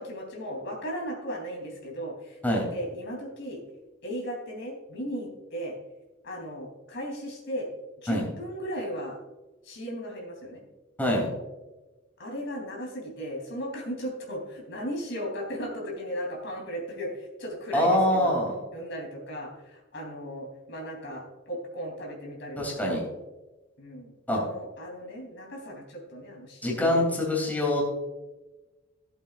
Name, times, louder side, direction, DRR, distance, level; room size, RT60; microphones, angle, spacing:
voice 1, 0.0-2.4 2.7-3.6 4.0-5.7 6.2-7.7 8.0-9.2 9.6-10.6 12.2-18.4 18.7-23.0 23.8-27.0, equal, 65° left, 0 dB, 3.4 m, -36 dB
voice 2, 17.7-18.6 22.6-23.0 24.3-24.4 26.6-27.8, left 1 dB, 10° left, -2 dB, 3.1 m, -24 dB
16.5 x 8.1 x 2.5 m, 1.1 s
head